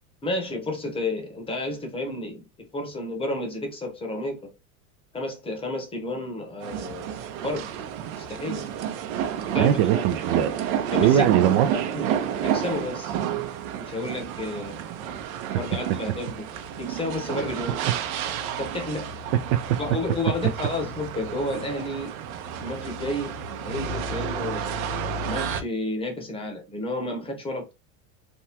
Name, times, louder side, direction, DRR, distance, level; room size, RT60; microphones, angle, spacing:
voice 1, 0.2-4.5 5.1-7.7 8.2-8.9 9.5-9.9 10.9-11.3 11.9-13.2 13.8-14.8 15.5-16.5 16.8-17.8 18.6-19.1 19.8-22.1 22.6-23.3 23.6-24.7 25.3-27.7, left 2 dB, 15° left, 0.8 m, -31 dB
ro passegiata mixdown, 6.6-25.6, right 8 dB, 80° right, 0.8 m, -30 dB
voice 2, 9.5-10.5 11.0-11.9 19.5-19.8, right 10 dB, 50° right, 0.5 m, -21 dB
3.5 x 2.2 x 2.8 m
supercardioid pair, 150°, 41 cm